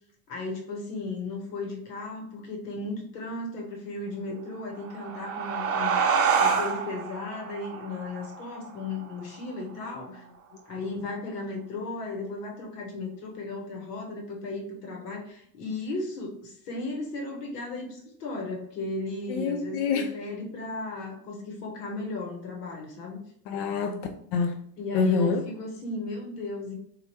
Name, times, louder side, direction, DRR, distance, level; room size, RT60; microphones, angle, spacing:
voice 1, 0.3-6.0 6.4-10.2 10.7-23.2 24.8-26.7, left 3 dB, 85° left, 1 dB, 1.2 m, -35 dB
sound 1, 4.7-9.9, right 6 dB, 30° right, 0.6 m, -28 dB
voice 2, 19.3-20.1 23.5-24.5 24.9-25.4, left 5 dB, 55° left, 5 dB, 0.6 m, -26 dB
4.2 x 2.5 x 2.8 m, 0.66 s
hypercardioid pair, 80°, 47 cm